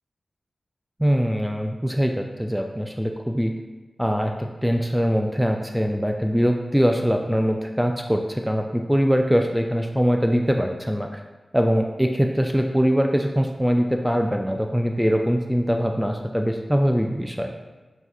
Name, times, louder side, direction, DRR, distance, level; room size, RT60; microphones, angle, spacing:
voice 1, 1.0-3.5 4.0-11.2 11.5-17.5, equal, ahead, 3 dB, 0.3 m, -22 dB
5.7 x 2.6 x 2.4 m, 1.2 s
wide cardioid pair, 60°, 0 cm